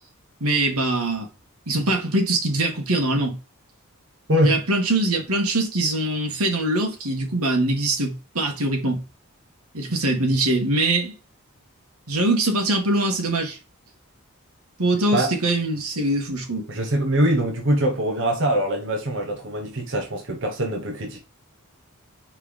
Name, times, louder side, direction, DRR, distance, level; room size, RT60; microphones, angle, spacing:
voice 1, 0.4-1.3 1.7-3.4 4.4-9.0 9.7-11.1 12.1-13.6 14.8-16.7, right 2 dB, 90° right, 2.0 m, -23 dB
voice 2, 16.7-21.2, right 1 dB, 60° right, 1.2 m, -23 dB
4.9 x 4.5 x 5.2 m
head